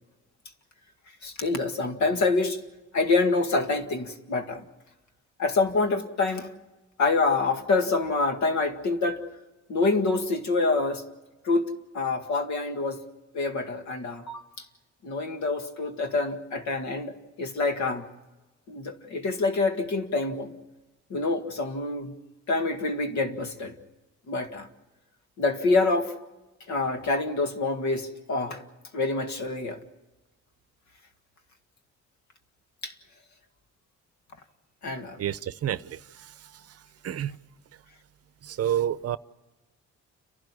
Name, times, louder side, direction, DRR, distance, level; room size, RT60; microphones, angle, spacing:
voice 1, 1.2-2.6 2.9-4.6 5.4-6.5 7.0-9.2 9.7-11.0 11.4-13.0 13.3-14.5 15.0-18.1 18.7-20.5 21.1-22.1 22.5-23.8 24.3-24.7 25.4-26.1 26.7-28.6 28.9-29.8 32.8-32.9 34.8-35.2, left 3 dB, 70° left, 2.0 m, -26 dB
voice 2, 35.2-36.0 37.0-37.4 38.4-39.2, right 10 dB, 55° right, 0.7 m, -28 dB
29.5 x 12.0 x 9.8 m
cardioid pair, 90°, 30 cm